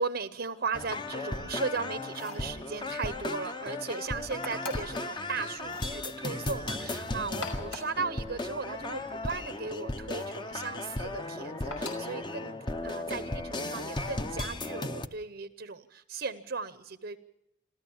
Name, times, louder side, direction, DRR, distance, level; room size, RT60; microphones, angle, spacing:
voice 1, 0.0-12.5 12.8-17.2, right 4 dB, 55° right, 12 dB, 0.8 m, -36 dB
sound 1, 0.7-15.1, left 2 dB, 25° left, 0.8 m, -36 dB
sound 2, 2.0-2.5 4.4-5.0 5.6-5.9 7.2-8.0 10.1-10.4 11.7-12.1 13.8-14.2, left 3 dB, 85° left, 5.3 m, -42 dB
28.0 x 13.5 x 7.2 m, 0.90 s
head